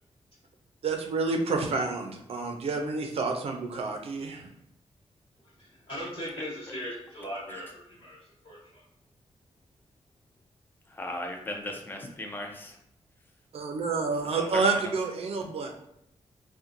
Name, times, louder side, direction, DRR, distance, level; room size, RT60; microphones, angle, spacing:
voice 1, 0.8-4.5 13.5-15.7, right 4 dB, 65° right, 3 dB, 0.5 m, -29 dB
voice 2, 5.9-8.8, equal, 55° left, -7 dB, 1.3 m, -39 dB
voice 3, 10.9-12.8 14.2-14.9, left 1 dB, 20° left, 2 dB, 0.5 m, -37 dB
4.3 x 2.2 x 2.5 m, 0.77 s
wide cardioid pair, 150°, 11 cm